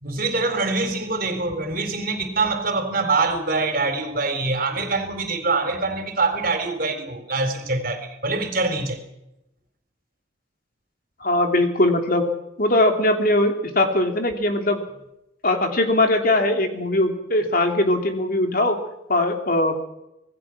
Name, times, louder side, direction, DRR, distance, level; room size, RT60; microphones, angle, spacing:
voice 1, 0.0-9.0, right 3 dB, 50° right, 4.0 m, -24 dB
voice 2, 11.2-12.3 12.6-14.8 15.4-18.8 19.1-19.8, left 1 dB, 50° left, 3.1 m, -20 dB
26.5 x 19.5 x 6.2 m
head